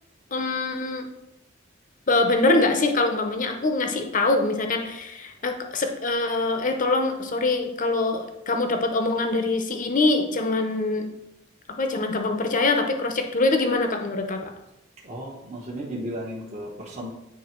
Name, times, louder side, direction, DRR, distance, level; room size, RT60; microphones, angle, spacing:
voice 1, 0.3-1.1 2.1-11.1 11.8-14.5, left 2 dB, 40° left, 5 dB, 0.8 m, -24 dB
voice 2, 15.0-17.1, equal, 35° right, -4 dB, 1.1 m, -34 dB
9.4 x 3.4 x 4.5 m, 0.90 s
head